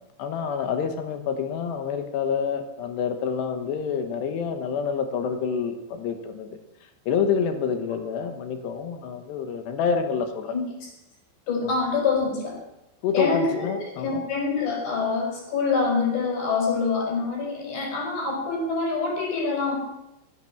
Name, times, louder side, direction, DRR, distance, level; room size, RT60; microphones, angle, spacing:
voice 1, 0.2-6.5 7.1-10.5 11.6-11.7 13.0-14.2, left 6 dB, 75° left, 7 dB, 3.2 m, -27 dB
voice 2, 11.5-12.6 13.1-19.8, left 4 dB, 50° left, -2 dB, 6.3 m, -25 dB
15.5 x 9.2 x 6.1 m, 0.92 s
omnidirectional pair, 5.3 m